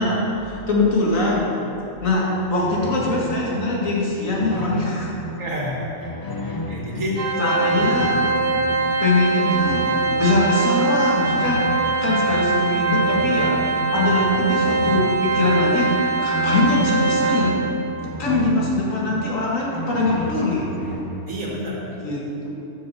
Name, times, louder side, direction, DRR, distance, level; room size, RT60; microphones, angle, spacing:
voice 1, 0.0-1.6 2.0-5.1 7.4-8.2 9.0-9.8 10.1-11.6 12.0-13.5 13.9-15.9 16.2-17.5 18.2-20.7 22.0-22.5, left 2 dB, 75° left, -4 dB, 2.2 m, -22 dB
sound 1, 2.3-21.6, equal, 25° left, 0.4 m, -33 dB
voice 2, 5.4-6.1 6.4-7.2 14.0-14.1 21.3-21.9, equal, 75° right, -3 dB, 2.2 m, -29 dB
Organ, 7.2-17.9, right 3 dB, 55° right, 0.8 m, -22 dB
8.1 x 6.7 x 6.7 m, 2.9 s
omnidirectional pair, 1.4 m